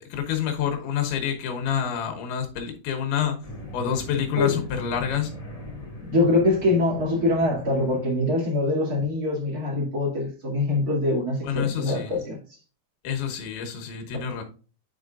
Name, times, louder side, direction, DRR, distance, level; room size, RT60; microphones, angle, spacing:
voice 1, 0.0-3.4 3.7-5.3 11.4-12.2 13.0-14.4, left 8 dB, 90° left, 3.1 m, -27 dB
sound 1, 3.4-8.5, left 1 dB, 25° left, 0.8 m, -41 dB
voice 2, 6.1-12.4, left 2 dB, 30° right, 1.9 m, -24 dB
9.7 x 4.9 x 2.4 m
omnidirectional pair, 4.4 m